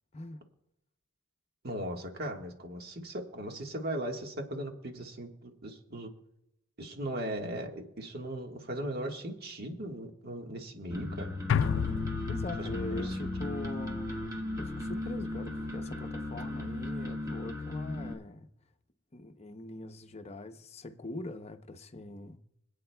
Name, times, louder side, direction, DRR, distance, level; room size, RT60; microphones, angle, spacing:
voice 1, 1.6-6.1 6.8-11.3 12.6-13.2 13.7-13.8, right 1 dB, 50° right, 1.5 m, -38 dB
sound 1, 10.9-18.1, left 1 dB, 15° right, 1.4 m, -36 dB
sound 2, 11.5-15.9 16.3-16.4, left 7 dB, 65° left, 0.3 m, -34 dB
voice 2, 12.3-18.5 19.1-22.4, left 2 dB, 30° left, 0.7 m, -42 dB
26.0 x 8.7 x 2.3 m
head